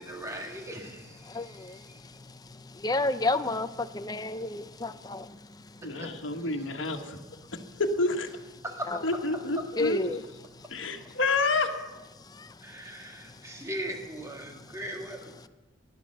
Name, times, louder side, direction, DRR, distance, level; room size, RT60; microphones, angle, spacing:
voice 1, 0.0-2.0 5.9-6.1 6.4-7.1 8.6-8.9 12.6-15.5, right 1 dB, 15° right, 1.8 m, -40 dB
voice 2, 1.3-1.8 2.6-5.4 9.8-10.2 12.3-12.5, left 2 dB, 20° left, 0.5 m, -30 dB
voice 3, 5.8-7.2 7.8-8.3 9.0-10.0 10.7-11.7, left 3 dB, 70° left, 1.5 m, -28 dB
16.0 x 11.0 x 6.5 m
head